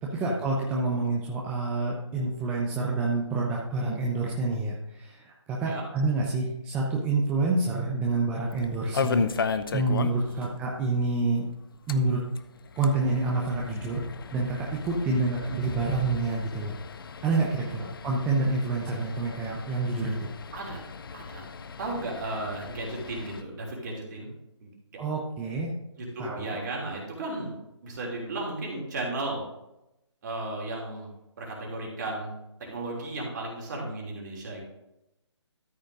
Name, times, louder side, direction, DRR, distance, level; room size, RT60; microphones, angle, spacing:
voice 1, 0.0-11.4 11.9-12.2 12.8-14.0 14.3-16.7 17.2-20.3 25.0-25.7 26.2-26.6, right 3 dB, 10° right, -3 dB, 0.7 m, -28 dB
sound 1, 8.5-10.5 10.7-10.8 11.1-11.2 11.7-23.4, left 5 dB, 50° left, 0.6 m, -36 dB
voice 2, 8.8-9.1 10.2-10.5 15.0-15.2 17.6-17.8 18.9-19.0 20.5-20.8 21.1-21.4 21.8-24.3 24.6-24.7 26.0-27.5 27.8-29.4 30.2-31.1 31.4-32.3 32.6-34.6, right 2 dB, 40° right, -2 dB, 3.2 m, -35 dB
13.5 x 5.1 x 3.8 m, 0.90 s
figure-of-eight pair, 145°, 15 cm